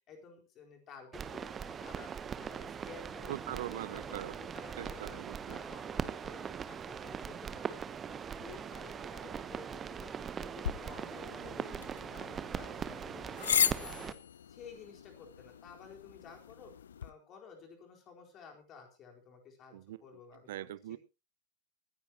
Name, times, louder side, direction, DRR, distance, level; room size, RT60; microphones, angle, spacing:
voice 1, 0.1-3.3 3.9-4.3 4.5-5.2 5.5-7.7 8.1-14.2 14.5-16.7 17.0-20.5 20.9-21.0, left 6 dB, 30° left, 4.3 m, -53 dB
sound 1, 1.1-14.1, right 7 dB, 20° right, 1.0 m, -41 dB
voice 2, 3.3-4.4 4.8-5.6 19.7-20.2 20.5-21.0, right 14 dB, 55° right, 0.7 m, -42 dB
Wind instrument woodwind instrument, 9.0-13.4, left 7 dB, 45° left, 4.2 m, -71 dB
sound 2, 10.6-17.1, left 8 dB, 65° left, 0.6 m, -37 dB
24.0 x 10.5 x 2.9 m
figure-of-eight pair, 90°, 0 cm